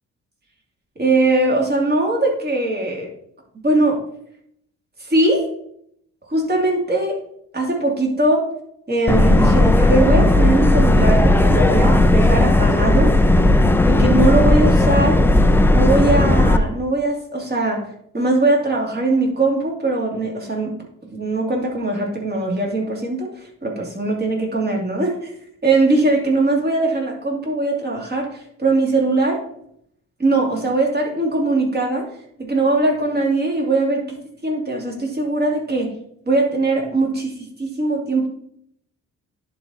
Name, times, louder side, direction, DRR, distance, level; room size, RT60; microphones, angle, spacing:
voice 1, 1.0-3.1 3.6-4.0 5.0-5.5 6.3-7.2 7.5-8.5 8.9-13.1 13.8-15.2 15.7-17.8 18.1-20.7 21.0-25.3 25.6-29.4 30.2-32.0 32.4-34.2 34.4-35.9 36.3-38.3, right 2 dB, 30° right, -1 dB, 2.6 m, -20 dB
Subway metro underground, 9.1-16.6, left 1 dB, 5° left, 0.5 m, -14 dB
10.5 x 4.1 x 4.3 m, 0.69 s
cardioid pair, 90°, 30 cm